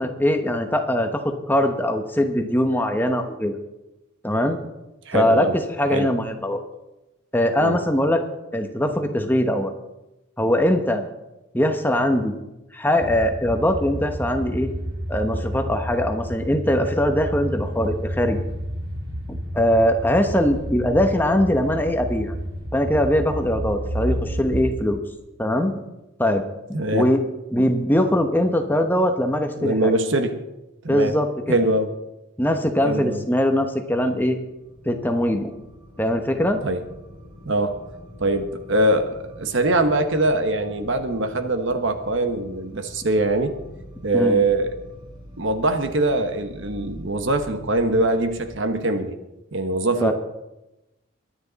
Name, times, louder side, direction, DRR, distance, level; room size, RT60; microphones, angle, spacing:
voice 1, 0.0-3.5 4.2-4.6 5.1-5.5 5.8-6.6 7.3-8.2 8.5-9.7 10.4-11.0 11.5-12.3 12.7-14.7 15.1-18.4 19.3-22.3 22.7-25.0 25.4-25.7 26.2-26.4 26.7-27.2 27.5-29.9 30.9-31.6 32.4-34.4 34.9-35.5 36.0-36.6 44.1-44.4 50.0-50.1, left 1 dB, 10° left, 6 dB, 0.9 m, -21 dB
voice 2, 5.1-5.5 5.9-6.1 7.6-7.8 26.7-27.1 29.6-30.4 30.8-31.1 31.5-31.9 32.8-33.2 36.6-36.8 37.4-37.9 38.2-43.6 44.0-44.8 45.4-49.2 49.5-50.1, right 2 dB, 60° right, 8 dB, 1.2 m, -22 dB
sound 1, 13.0-24.7, equal, 85° right, 2.7 m, -30 dB
sound 2, 34.5-48.5, equal, 20° right, 2.8 m, -44 dB
23.0 x 9.6 x 4.1 m, 0.96 s
head